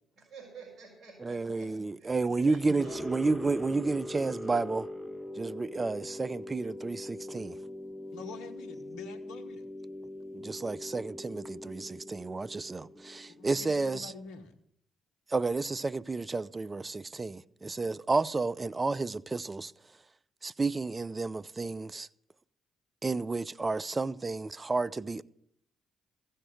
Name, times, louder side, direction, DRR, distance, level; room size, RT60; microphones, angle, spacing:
voice 1, 0.2-2.2 2.4-3.3, right 4 dB, 55° right, 4.8 m, -50 dB
voice 2, 1.2-4.8 5.4-7.6 10.3-14.1 15.3-19.7 20.4-22.1 23.0-25.2, right 3 dB, 30° right, 0.5 m, -31 dB
sound 1, 2.8-13.7, left 1 dB, 10° left, 1.4 m, -42 dB
voice 3, 8.1-9.6 13.3-14.6, left 4 dB, 80° left, 1.2 m, -46 dB
15.0 x 6.6 x 7.8 m
hypercardioid pair, 50°, 0 cm